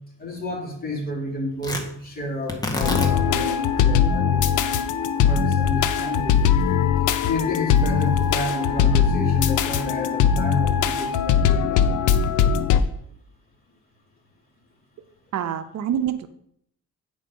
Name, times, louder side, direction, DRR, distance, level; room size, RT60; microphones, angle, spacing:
voice 1, 0.2-4.6 5.2-6.4 7.2-12.6, left 1 dB, 30° left, -2 dB, 3.2 m, -31 dB
Tearing, 1.6-9.9, left 2 dB, 15° left, 1.6 m, -35 dB
sound 1, 2.8-12.8, left 8 dB, 80° left, 0.7 m, -20 dB
voice 2, 15.3-16.3, right 9 dB, 65° right, 11 dB, 0.7 m, -26 dB
8.8 x 5.2 x 5.4 m, 0.70 s
cardioid pair, 90°, 30 cm